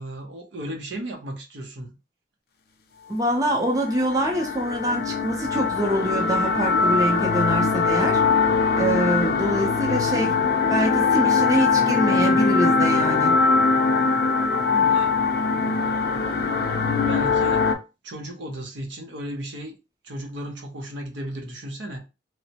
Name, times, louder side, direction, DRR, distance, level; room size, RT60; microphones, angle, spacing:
voice 1, 0.0-2.0 14.7-15.1 17.1-17.7 18.0-19.8 20.0-22.0, right 1 dB, 75° right, 0.7 m, -35 dB
voice 2, 3.1-8.2 8.8-10.4 10.7-13.3, equal, 20° right, 0.5 m, -25 dB
sound 1, 3.6-17.7, left 4 dB, 55° left, 0.5 m, -21 dB
3.1 x 2.0 x 2.8 m
head